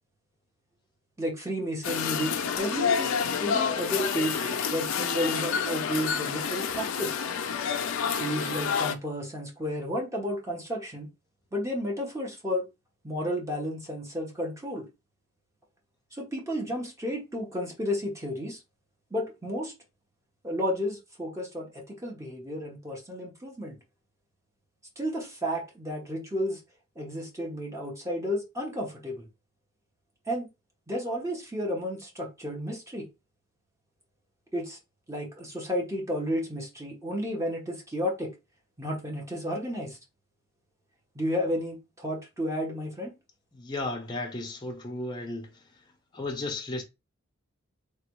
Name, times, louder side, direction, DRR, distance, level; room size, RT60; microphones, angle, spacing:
voice 1, 1.2-4.4 4.7-7.2 8.2-11.1 11.5-12.6 13.0-14.9 16.1-18.6 19.1-19.7 20.4-23.8 25.0-26.6 27.0-29.3 30.3-30.5 30.9-33.1 34.5-34.8 35.1-38.3 38.8-40.0 41.1-43.1, equal, 15° right, 0.8 m, -32 dB
sound 1, 1.8-8.9, left 6 dB, 90° left, 0.4 m, -29 dB
voice 2, 43.5-45.5 46.1-46.8, left 2 dB, 20° left, 0.5 m, -34 dB
3.1 x 2.2 x 3.0 m
head